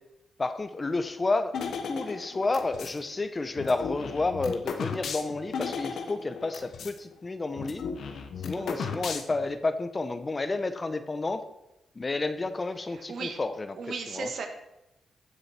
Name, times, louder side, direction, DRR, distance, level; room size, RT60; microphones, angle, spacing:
voice 1, 0.4-1.5 1.8-7.8 8.4-11.4 12.0-13.8 14.1-14.3, left 3 dB, 30° left, 10 dB, 0.9 m, -30 dB
sound 1, 1.5-3.0 3.6-7.0 7.2-7.3 7.6-9.5, left 6 dB, 70° left, 1.1 m, -35 dB
voice 2, 8.6-9.0 12.9-13.4 13.8-14.5, right 4 dB, 70° right, 4 dB, 1.7 m, -36 dB
15.5 x 6.6 x 4.5 m, 0.90 s
cardioid pair, 70°, 0 cm